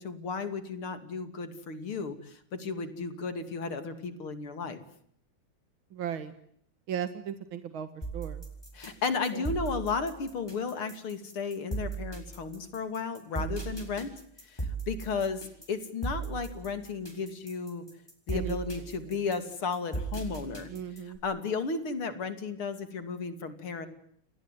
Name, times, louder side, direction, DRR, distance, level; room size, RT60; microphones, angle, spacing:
voice 1, 0.0-4.8 8.7-14.1 14.4-17.8 18.3-20.7 21.1-23.9, left 4 dB, 85° left, 10 dB, 3.6 m, -34 dB
voice 2, 2.7-3.0 5.9-6.3 6.9-7.9 8.1-8.4 9.3-9.4 13.3-13.6 18.3-18.6 19.1-19.2 20.7-21.2, right 9 dB, 75° right, 10 dB, 2.4 m, -37 dB
sound 1, 8.0-21.2, right 3 dB, 10° left, 6.9 m, -37 dB
29.5 x 21.0 x 9.2 m, 0.66 s
omnidirectional pair, 2.3 m